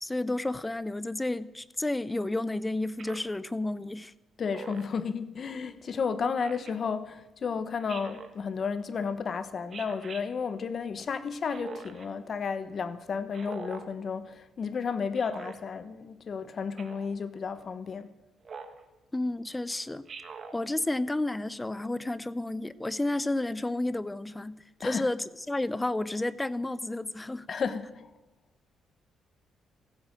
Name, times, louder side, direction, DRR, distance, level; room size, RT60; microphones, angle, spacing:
voice 1, 0.0-4.1 19.1-20.1 20.5-27.5, left 2 dB, 15° left, 0.6 m, -31 dB
Speech synthesizer, 3.0-3.4 4.5-5.0 6.4-6.7 7.9-8.3 9.7-10.2 11.5-12.1 13.3-13.9 15.1-15.6 16.8-17.1 18.4-18.8 20.1-20.6, right 5 dB, 45° right, 1.7 m, -43 dB
voice 2, 4.4-18.1 24.8-25.1 27.5-28.1, left 5 dB, 50° left, 1.2 m, -32 dB
16.0 x 10.0 x 7.7 m
cardioid pair, 90°, 0 cm